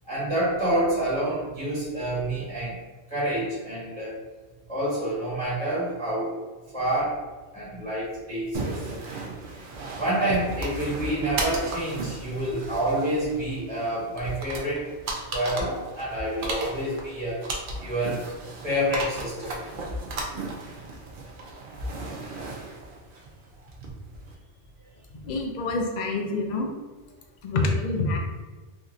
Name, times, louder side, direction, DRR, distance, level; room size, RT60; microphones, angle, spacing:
voice 1, 0.1-2.8 3.1-4.2 4.7-6.3 6.7-7.2 7.5-8.8 10.0-14.9 15.3-17.4 17.8-18.2 18.6-19.6, right 1 dB, 5° left, -10 dB, 1.0 m, -28 dB
sound 1, 8.5-24.3, right 2 dB, 55° right, 0.6 m, -35 dB
voice 2, 25.2-26.7 27.4-28.2, left 3 dB, 55° left, 2 dB, 0.5 m, -26 dB
3.5 x 2.6 x 2.4 m, 1.2 s
omnidirectional pair, 1.2 m